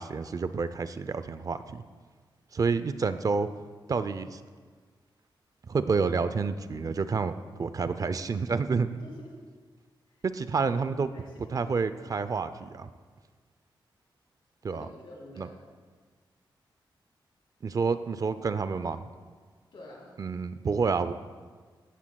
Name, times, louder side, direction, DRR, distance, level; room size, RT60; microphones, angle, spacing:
voice 1, 0.0-1.8 2.5-3.5 3.9-4.4 5.7-7.3 7.6-8.9 10.2-11.1 11.5-12.9 14.6-14.9 15.4-15.5 17.6-19.0 20.2-21.1, right 4 dB, 45° right, 12 dB, 0.5 m, -29 dB
voice 2, 9.0-9.3 11.1-11.6 14.7-15.6 19.7-20.2, left 1 dB, 80° left, -3 dB, 3.3 m, -47 dB
16.5 x 13.5 x 2.3 m, 1.5 s
wide cardioid pair, 130°, 9 cm